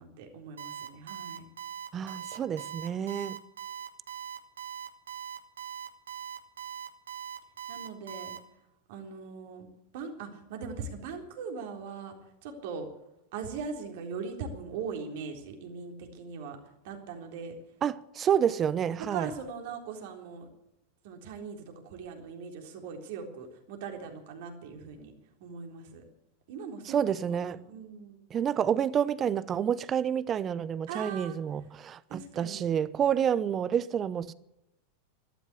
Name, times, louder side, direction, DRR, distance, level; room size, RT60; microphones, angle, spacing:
voice 1, 0.0-1.5 7.7-8.4 8.9-9.7 9.9-12.2 12.4-12.9 13.3-16.6 16.8-17.5 19.1-20.5 21.0-25.1 25.4-26.0 26.5-28.2 30.9-31.4 32.1-32.7, right 5 dB, 60° right, 3.7 m, -40 dB
Alarm, 0.6-8.4, right 9 dB, 80° right, 2.1 m, -40 dB
voice 2, 1.9-3.4 17.8-19.3 26.8-27.6 28.3-34.3, right 8 dB, 30° right, 0.9 m, -29 dB
13.0 x 13.0 x 8.3 m
hypercardioid pair, 95°, 0 cm